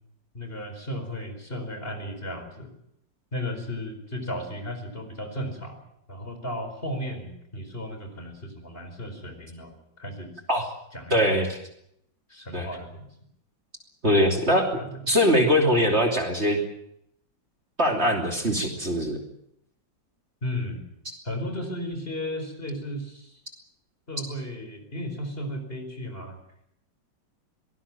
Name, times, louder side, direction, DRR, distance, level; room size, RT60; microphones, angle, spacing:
voice 1, 0.3-2.7 3.3-5.8 6.1-10.3 10.9-11.5 12.3-13.1 14.7-15.0 20.4-20.9 21.2-23.4 24.1-26.4, equal, 30° left, 6 dB, 4.9 m, -35 dB
voice 2, 11.1-11.6 12.5-12.7 14.0-14.7 15.1-16.6 17.8-19.2, equal, 35° right, 2 dB, 3.2 m, -22 dB
24.0 x 19.0 x 7.4 m, 0.74 s
omnidirectional pair, 2.0 m